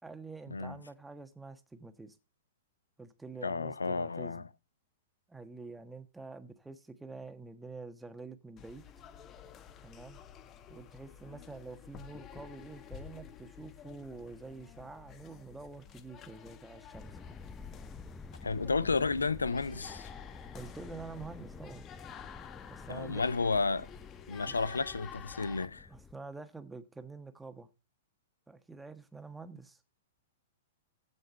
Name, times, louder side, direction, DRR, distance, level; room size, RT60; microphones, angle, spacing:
voice 1, 0.0-2.2 3.0-4.5 5.3-8.8 9.8-10.2 10.7-17.2 20.5-21.8 22.7-23.2 24.5-24.6 25.9-27.7 28.5-29.8, right 3 dB, 5° right, 1.4 m, -47 dB
voice 2, 3.4-4.4 18.4-20.1 22.9-23.9 24.3-25.9, left 4 dB, 80° left, 0.6 m, -32 dB
sound 1, 8.6-25.7, left 9 dB, 25° left, 1.2 m, -51 dB
sound 2, 16.9-26.1, left 4 dB, 10° left, 0.7 m, -50 dB
15.5 x 5.3 x 4.2 m
figure-of-eight pair, 105°, 0 cm